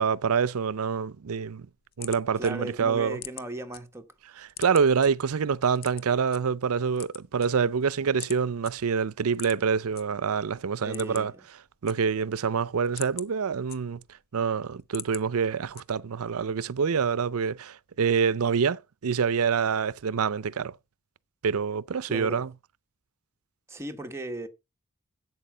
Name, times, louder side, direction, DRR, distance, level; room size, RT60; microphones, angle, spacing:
voice 1, 0.0-1.7 2.0-3.2 4.4-11.3 11.8-14.0 14.3-20.7 21.4-22.5, right 6 dB, 75° right, 0.5 m, -26 dB
sound 1, 1.6-3.8 4.2-5.1 5.8-6.4 6.9-7.8 8.2-8.4 8.6-8.7 9.3-10.0 10.4-10.5 10.8-11.4 11.7-12.4 12.7-14.2 14.6-15.2 15.7-16.2, left 12 dB, 45° left, 0.7 m, -42 dB
voice 2, 2.4-4.1 10.8-11.4 22.1-22.5 23.7-24.5, right 1 dB, 10° right, 1.3 m, -37 dB
11.0 x 8.2 x 5.0 m
head